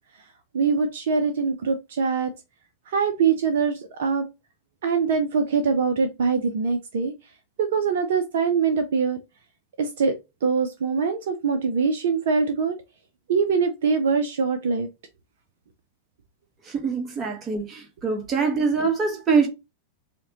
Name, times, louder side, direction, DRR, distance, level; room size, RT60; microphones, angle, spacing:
voice 1, 0.5-2.3 2.9-4.2 4.8-7.1 7.6-9.2 9.8-10.1 10.4-12.7 13.3-14.9, right 5 dB, 60° right, 0.5 m, -23 dB
voice 2, 16.7-19.5, right 5 dB, 25° right, 1.2 m, -24 dB
4.7 x 2.2 x 2.9 m
figure-of-eight pair, 90°, 0 cm